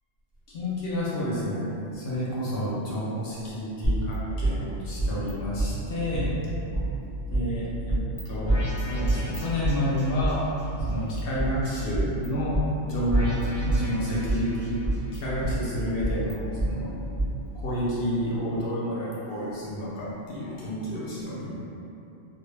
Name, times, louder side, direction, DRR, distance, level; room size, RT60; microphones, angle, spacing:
voice 1, 0.5-6.4 7.3-10.5 10.9-12.6 12.9-14.8 15.1-16.9 17.5-21.6, equal, 65° left, -7 dB, 0.7 m, -30 dB
sound 1, 3.8-5.3 5.6-5.7 6.1-7.4 7.9-8.2 8.5-10.3 10.8-12.3 12.5-12.6 13.1-14.5 14.8-16.7 17.2-17.3, right 1 dB, 20° left, 0.6 m, -27 dB
2.2 x 2.1 x 3.1 m, 2.8 s
omnidirectional pair, 1.2 m